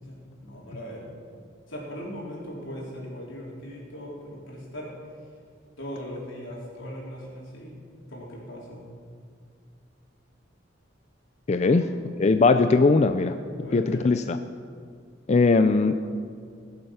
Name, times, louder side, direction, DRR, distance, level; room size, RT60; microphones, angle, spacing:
voice 1, 0.0-1.1 1.7-4.9 5.8-7.8 8.1-8.9 11.6-11.8 13.6-14.2, equal, 80° left, -4 dB, 4.0 m, -39 dB
voice 2, 11.5-11.8 12.2-13.3 13.7-14.4 15.3-16.0, left 3 dB, 35° left, 8 dB, 0.4 m, -20 dB
20.5 x 7.7 x 5.7 m, 2.1 s
head